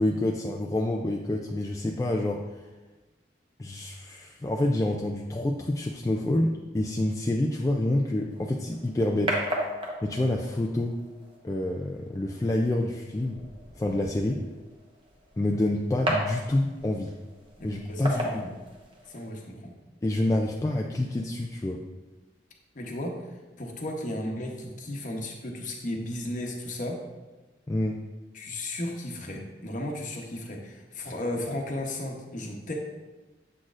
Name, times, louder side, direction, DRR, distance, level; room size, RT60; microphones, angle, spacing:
voice 1, 0.0-2.5 3.6-9.4 10.0-11.0 11.4-13.4 13.8-14.4 15.4-17.1 17.6-18.4 20.0-21.8 27.7-28.0, left 1 dB, 20° left, 0 dB, 0.3 m, -27 dB
sound 1, 8.3-19.3, equal, 30° right, 1.0 m, -36 dB
voice 2, 17.6-18.5 19.1-19.7 22.7-23.3 23.6-27.0 28.3-32.8, left 1 dB, 45° left, 1 dB, 0.9 m, -35 dB
7.6 x 6.1 x 2.5 m, 1.2 s
head